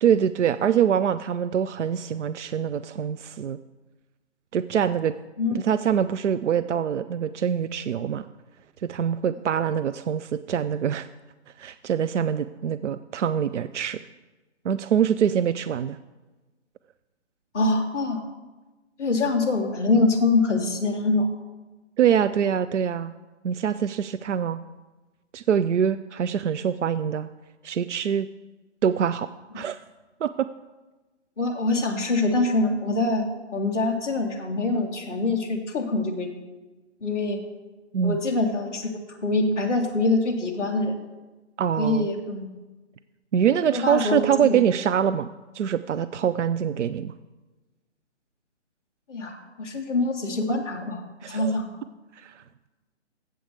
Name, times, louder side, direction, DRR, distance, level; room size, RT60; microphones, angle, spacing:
voice 1, 0.0-3.6 4.5-5.1 5.5-8.3 8.8-11.1 11.6-14.0 14.6-16.0 22.0-23.1 23.4-24.6 25.3-27.3 27.6-28.3 28.8-29.3 29.5-29.8 30.2-30.5 37.9-38.2 41.6-42.1 43.3-47.1 51.2-51.5 52.2-52.4, right 8 dB, 80° right, 13 dB, 0.5 m, -24 dB
voice 2, 17.5-18.2 19.0-21.3 31.4-33.2 33.5-36.3 37.0-37.4 38.0-38.9 39.2-41.0 41.8-42.4 43.7-44.6 49.1-51.7, left 2 dB, 5° left, -6 dB, 0.5 m, -24 dB
8.2 x 7.8 x 6.6 m, 1.2 s
hypercardioid pair, 150°, 35 cm